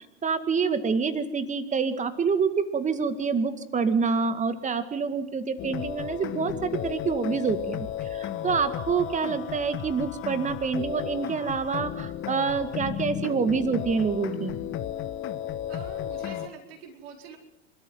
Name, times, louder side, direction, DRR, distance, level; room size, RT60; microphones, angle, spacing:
voice 1, 0.2-14.6, right 5 dB, 20° right, 11 dB, 2.0 m, -27 dB
sound 1, 5.6-16.5, left 11 dB, 35° left, 1.4 m, -34 dB
voice 2, 15.7-17.4, right 6 dB, 55° right, 1 dB, 4.8 m, -45 dB
27.5 x 13.5 x 7.9 m, 0.89 s
figure-of-eight pair, 85°, 35 cm